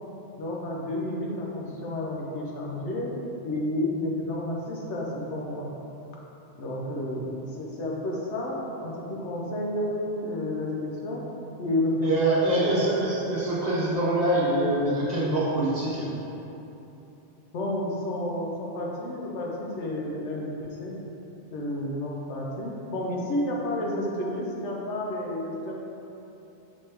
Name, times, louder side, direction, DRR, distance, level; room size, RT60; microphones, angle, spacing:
voice 1, 0.4-3.2 3.4-5.7 6.6-11.2 11.6-12.8 17.5-21.0 21.5-25.7, left 1 dB, 80° left, -3 dB, 1.0 m, -31 dB
voice 2, 12.0-16.1, right 1 dB, 40° right, -7 dB, 0.8 m, -24 dB
5.2 x 3.5 x 2.8 m, 3.0 s
omnidirectional pair, 1.2 m